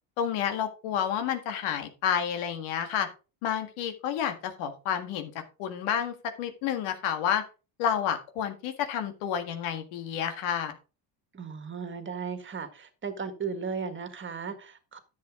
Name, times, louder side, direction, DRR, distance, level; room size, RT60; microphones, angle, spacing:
voice 1, 0.2-3.1 3.4-5.3 5.6-7.4 7.8-10.7, left 8 dB, 85° left, 1.9 m, -30 dB
voice 2, 11.3-15.0, right 5 dB, 25° right, 1.7 m, -36 dB
10.5 x 7.6 x 3.7 m
cardioid pair, 135°, 48 cm